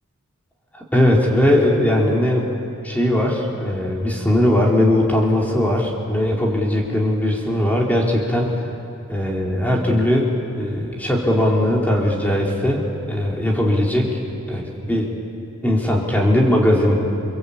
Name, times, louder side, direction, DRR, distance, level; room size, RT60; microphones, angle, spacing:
voice 1, 0.9-2.5 2.8-8.6 9.1-14.1 14.5-15.1 15.6-16.9, left 1 dB, 10° left, -2 dB, 3.8 m, -19 dB
29.0 x 23.0 x 8.6 m, 2.7 s
head